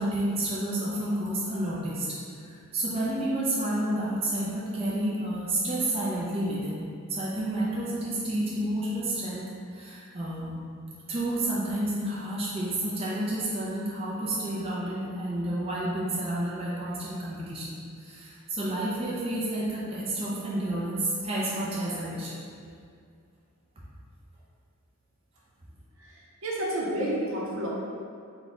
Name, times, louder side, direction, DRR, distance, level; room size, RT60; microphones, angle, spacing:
voice 1, 0.0-2.2 2.4-6.8 7.1-10.6 11.1-22.4, right 1 dB, 25° right, -6 dB, 0.5 m, -30 dB
voice 2, 26.0-27.7, right 1 dB, 70° right, -4 dB, 0.7 m, -30 dB
4.0 x 2.3 x 3.7 m, 2.3 s
head